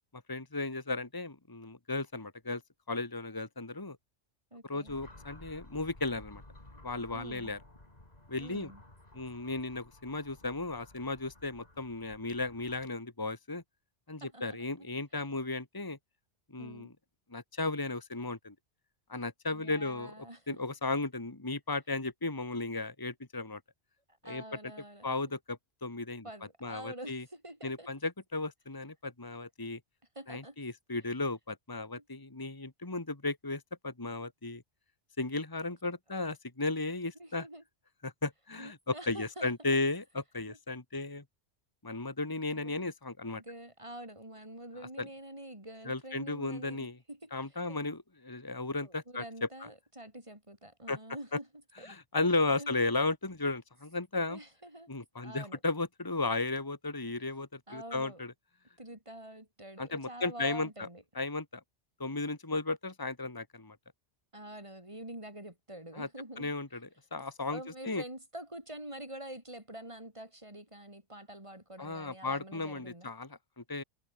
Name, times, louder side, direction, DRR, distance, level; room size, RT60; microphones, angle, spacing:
voice 1, 0.1-2.6 2.9-4.0 4.6-6.4 6.8-7.6 8.3-8.7 9.1-13.6 14.1-16.0 16.5-16.9 17.3-18.6 19.1-23.6 24.2-24.6 25.0-26.3 26.6-27.2 27.6-29.8 30.3-34.6 35.2-37.4 38.0-41.2 41.8-43.4 45.0-45.1 45.9-47.0 47.3-49.5 50.9-51.0 51.9-54.4 54.9-58.3 59.8-60.9 61.2-61.6 62.0-63.8 66.0-66.1 66.4-66.8 67.1-68.0 71.8-73.8, left 3 dB, 20° left, 1.8 m, -35 dB
voice 2, 4.5-5.0 7.1-7.5 8.4-8.8 14.2-14.6 15.1-15.2 16.6-16.9 19.5-20.6 24.2-25.3 26.2-27.9 30.2-30.6 32.0-32.1 37.2-37.6 38.6-39.5 40.5-40.6 42.5-42.9 43.3-47.8 48.8-51.5 51.8-52.0 52.6-52.8 54.3-54.9 55.2-55.6 57.7-58.2 58.8-61.0 64.3-66.5 67.5-73.1, right 1 dB, 25° right, 5.3 m, -46 dB
sound 1, 4.9-12.9, left 1 dB, 35° left, 3.9 m, -55 dB
omnidirectional pair, 1.2 m